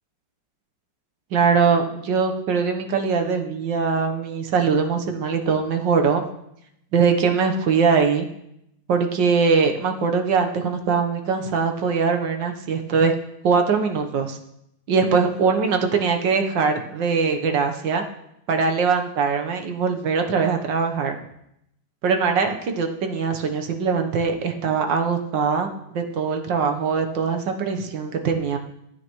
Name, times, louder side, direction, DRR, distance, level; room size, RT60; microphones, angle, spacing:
voice 1, 1.3-6.2 6.9-8.3 8.9-13.1 13.4-14.4 14.9-18.0 18.5-21.1 22.0-25.7 25.9-28.6, right 5 dB, 70° right, 5 dB, 1.7 m, -22 dB
13.5 x 8.8 x 3.1 m, 0.78 s
omnidirectional pair, 2.2 m